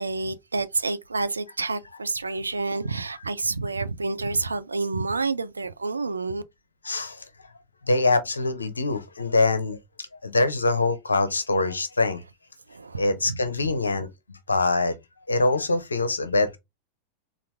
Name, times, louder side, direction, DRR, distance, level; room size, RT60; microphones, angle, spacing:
voice 1, 0.0-6.4 12.7-13.4, right 3 dB, 80° right, 0.4 m, -29 dB
voice 2, 6.8-7.2 7.9-12.2 13.0-14.9 15.3-16.6, left 2 dB, 75° left, 0.7 m, -24 dB
4.0 x 2.5 x 3.4 m
figure-of-eight pair, 90°, 0 cm